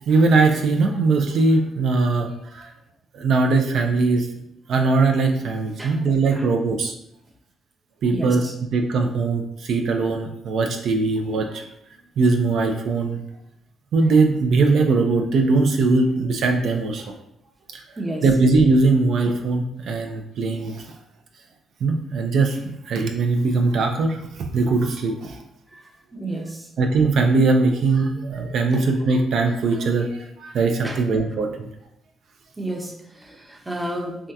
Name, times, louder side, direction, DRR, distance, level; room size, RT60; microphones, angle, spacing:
voice 1, 0.0-2.7 3.1-4.3 4.7-6.9 8.0-11.7 12.2-13.2 13.9-17.1 17.7-17.8 18.2-20.9 21.8-24.2 24.5-25.4 26.8-31.7, right 3 dB, 65° right, 3 dB, 0.4 m, -20 dB
voice 2, 8.1-8.5 18.0-18.2 26.1-26.7 28.7-28.9 30.8-31.0 32.6-34.3, right 1 dB, 15° right, 1 dB, 0.6 m, -31 dB
3.5 x 2.2 x 2.7 m, 0.77 s
cardioid pair, 90°, 0 cm